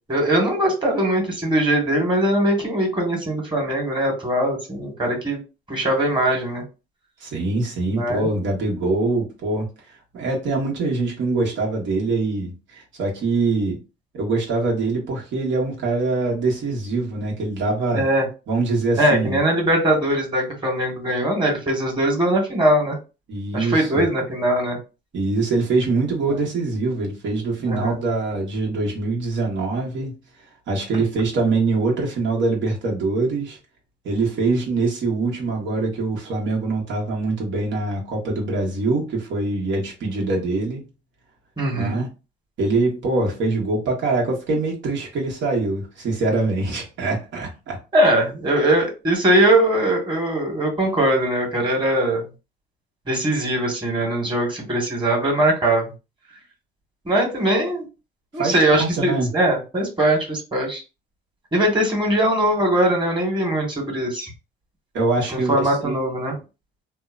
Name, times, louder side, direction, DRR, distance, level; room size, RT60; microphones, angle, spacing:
voice 1, 0.1-5.4 5.7-6.6 7.9-8.3 17.9-18.3 19.0-23.0 23.5-24.8 26.3-26.4 27.7-27.9 41.6-41.9 47.9-52.3 53.1-55.9 57.0-57.8 58.3-60.8 61.5-64.3 65.3-66.4, right 1 dB, 25° right, 1.4 m, -21 dB
voice 2, 7.2-9.7 10.1-13.8 14.1-18.0 18.5-19.4 23.3-24.0 25.1-30.2 30.7-33.6 34.0-40.9 41.7-42.1 42.6-47.8 58.4-59.3 64.9-66.4, right 3 dB, 70° right, 1.2 m, -23 dB
2.8 x 2.1 x 2.4 m
cardioid pair, 90°, 20 cm